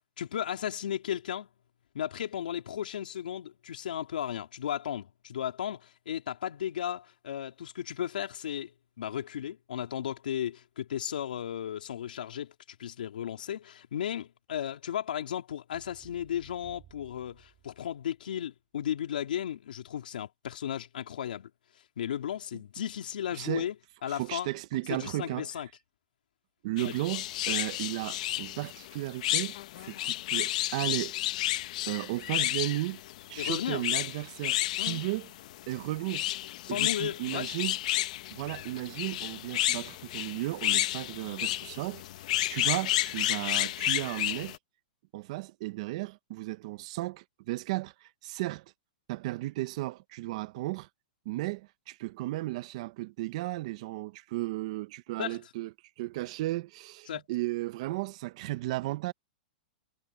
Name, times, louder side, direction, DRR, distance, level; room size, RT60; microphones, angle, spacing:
voice 1, 0.2-1.5 1.9-8.7 9.0-12.5 12.8-21.5 22.0-23.7 24.0-24.5 24.9-25.7 26.8-26.9 33.4-33.9 34.8-35.0 36.6-37.5 55.2-55.4 57.1-57.2, left 10 dB, 80° left, 3.4 m, -35 dB
sound 1, 15.7-18.2, right 12 dB, 25° right, 3.3 m, -58 dB
voice 2, 23.3-23.7 24.1-25.5 26.6-29.6 29.8-31.1 31.9-33.0 33.3-35.3 35.7-36.3 36.7-37.8 38.3-42.0 42.5-44.6 45.1-48.6 49.1-50.9 51.2-59.1, right 18 dB, 45° right, 0.8 m, -34 dB
sound 2, 26.8-44.6, left 15 dB, 55° left, 1.0 m, -31 dB
hypercardioid pair, 160°, 5 cm